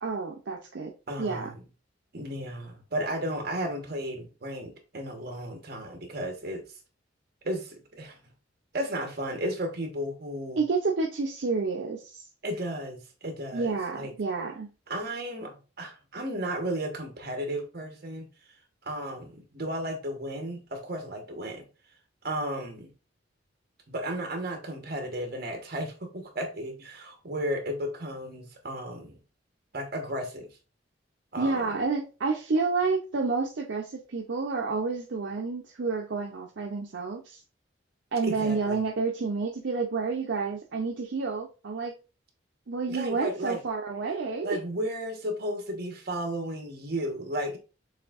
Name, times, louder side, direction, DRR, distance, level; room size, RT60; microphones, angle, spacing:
voice 1, 0.0-0.9 1.2-1.5 10.6-12.2 13.5-14.7 31.4-37.4 38.1-41.9 42.7-44.6, right 4 dB, 70° right, 0.6 m, -29 dB
voice 2, 1.1-1.6 2.1-6.6 7.4-8.2 8.7-10.6 12.4-14.1 14.9-18.3 18.8-21.7 22.2-22.9 23.9-29.2 29.7-30.5 31.3-31.8 38.2-38.8 42.9-43.6 44.4-47.6, right 1 dB, 55° right, 1.1 m, -34 dB
6.5 x 2.6 x 2.4 m
head